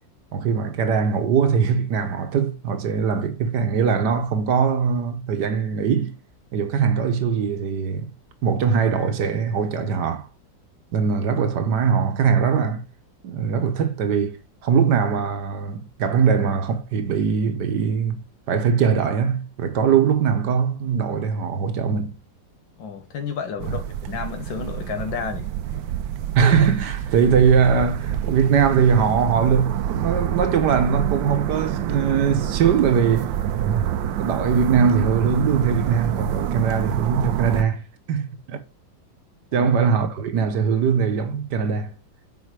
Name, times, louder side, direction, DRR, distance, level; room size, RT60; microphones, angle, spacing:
voice 1, 0.3-6.2 6.5-8.1 8.4-10.3 10.9-12.9 13.2-22.2 23.7-23.8 26.3-33.3 33.6-33.8 34.2-37.8 38.1-38.6 39.5-41.9, right 6 dB, 65° right, 1.5 m, -21 dB
voice 2, 22.8-25.5 39.5-39.7, left 6 dB, 80° left, 2.0 m, -31 dB
sound 1, 23.6-37.6, right 10 dB, 80° right, 1.4 m, -27 dB
7.5 x 5.1 x 4.7 m
omnidirectional pair, 2.0 m